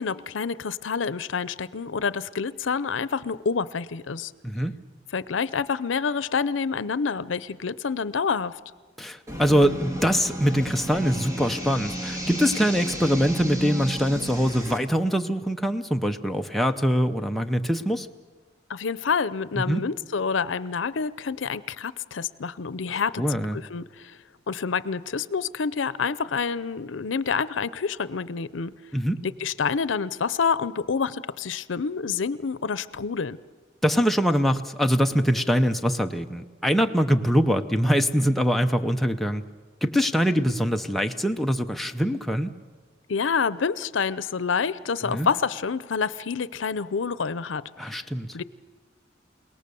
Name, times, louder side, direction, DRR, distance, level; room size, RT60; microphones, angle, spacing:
voice 1, 0.0-4.3 5.1-8.6 18.7-23.2 23.5-24.2 24.5-28.7 29.2-33.4 43.1-48.0 48.3-48.4, left 5 dB, 85° left, 17 dB, 0.6 m, -28 dB
voice 2, 9.0-18.1 19.5-19.8 22.9-23.6 28.9-29.2 33.8-39.4 39.8-42.5 45.0-45.3 47.8-48.3, equal, ahead, 4 dB, 0.7 m, -23 dB
sound 1, 9.3-14.8, right 1 dB, 20° right, 2.0 m, -33 dB
29.0 x 18.5 x 7.0 m, 1.4 s
head